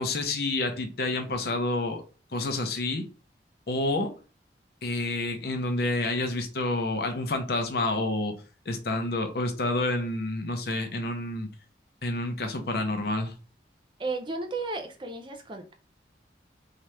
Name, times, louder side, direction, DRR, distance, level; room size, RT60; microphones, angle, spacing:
voice 1, 0.0-2.0 2.3-3.0 3.7-4.1 4.8-8.3 8.7-11.5 12.0-13.3, left 2 dB, 55° left, 0.6 m, -29 dB
voice 2, 14.0-15.7, right 3 dB, 25° right, 0.4 m, -34 dB
2.8 x 2.4 x 3.1 m
head